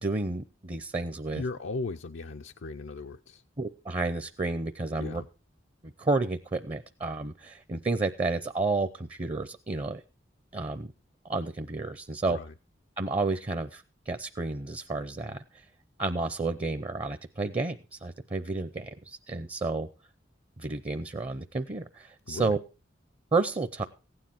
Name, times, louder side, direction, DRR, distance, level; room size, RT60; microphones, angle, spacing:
voice 1, 0.0-1.4 3.6-5.2 5.8-10.0 10.5-10.9 11.3-12.4 13.0-15.4 16.0-19.9 20.6-22.6 23.3-23.9, right 3 dB, 30° right, 0.6 m, -31 dB
voice 2, 1.3-3.4 5.0-5.3 12.3-12.5 22.3-22.6, left 3 dB, 85° left, 0.6 m, -37 dB
15.5 x 9.8 x 4.4 m
head